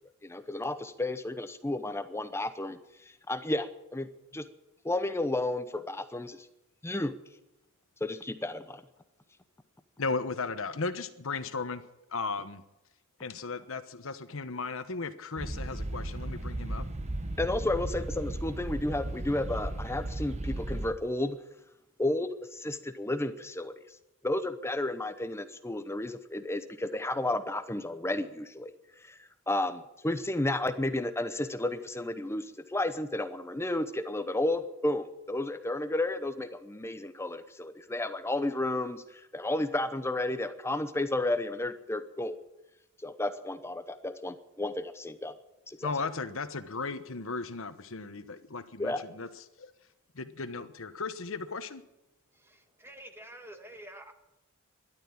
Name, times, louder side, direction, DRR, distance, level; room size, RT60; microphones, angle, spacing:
voice 1, 0.2-2.8 3.3-4.4 4.8-6.4 6.8-7.2 8.0-8.8 17.4-21.4 22.0-23.7 24.2-28.7 29.0-29.2 29.5-42.4 43.0-45.3 45.7-45.9 48.8-49.0, left 1 dB, 10° left, 11 dB, 0.8 m, -32 dB
voice 2, 10.0-11.8 12.1-12.6 13.2-16.9 45.8-49.3 49.6-49.7 50.1-51.8, left 4 dB, 70° left, 11 dB, 1.1 m, -36 dB
sound 1, 15.4-20.9, right 1 dB, 30° right, 1.1 m, -35 dB
voice 3, 52.3-54.1, right 1 dB, 10° right, 5 dB, 1.7 m, -48 dB
13.5 x 12.0 x 8.7 m, 0.94 s
head